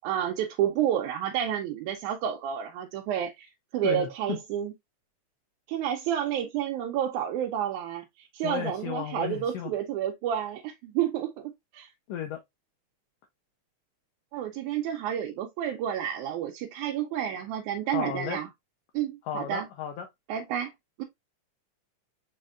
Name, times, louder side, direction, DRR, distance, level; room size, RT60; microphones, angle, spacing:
voice 1, 0.0-3.5 3.7-4.7 5.7-11.9 14.3-18.5 18.9-19.7 20.3-20.7 21.0-21.1, right 10 dB, 90° right, 2.1 m, -30 dB
voice 2, 8.4-9.7 12.1-12.4 17.9-18.4 19.2-20.1, left 9 dB, 75° left, 1.5 m, -33 dB
4.8 x 4.2 x 2.4 m
omnidirectional pair, 3.4 m